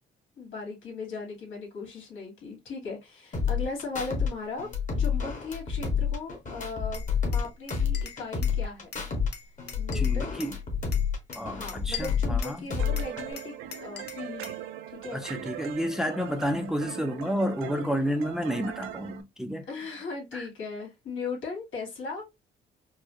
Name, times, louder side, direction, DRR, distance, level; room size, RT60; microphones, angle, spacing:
voice 1, 0.4-4.7 5.0-8.9 9.8-10.4 11.4-14.5 14.9-15.2 19.6-22.4, left 4 dB, 75° left, 2.1 m, -38 dB
sound 1, 3.3-4.3 4.6-7.4 7.7-9.3 9.6-12.4 12.7-13.3, left 6 dB, 40° left, 1.5 m, -28 dB
Glass, 6.9-8.6 8.9-10.6 10.9-12.6 13.0-14.6, left 7 dB, 60° left, 0.9 m, -42 dB
voice 2, 9.9-10.6 11.4-12.7 15.1-19.7 20.3-20.4, equal, ahead, 0.6 m, -30 dB
sound 2, 12.8-19.2, right 11 dB, 85° right, 0.5 m, -40 dB
4.6 x 2.2 x 2.8 m
cardioid pair, 90°, 20 cm